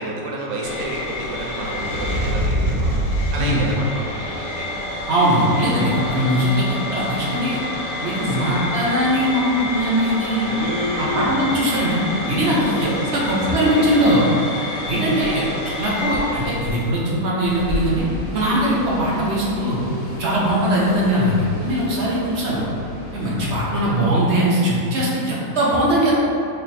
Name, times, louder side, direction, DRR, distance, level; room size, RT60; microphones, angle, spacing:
voice 1, 0.0-3.0 3.3-5.0 8.2-8.6 10.4-11.5 13.0-14.2 23.7-24.0, right 1 dB, 80° right, -2 dB, 1.1 m, -30 dB
sound 1, 0.6-16.9, left 1 dB, 85° left, 1.1 m, -27 dB
voice 2, 5.1-7.6 8.0-10.5 11.0-12.0 12.3-14.2 14.9-15.4 15.8-18.0 18.3-19.8 20.2-22.6 23.1-26.1, equal, 60° right, -6 dB, 0.9 m, -20 dB
sound 2, 17.4-24.1, equal, 50° left, 0.8 m, -32 dB
3.3 x 2.4 x 4.0 m, 2.7 s
omnidirectional pair, 1.5 m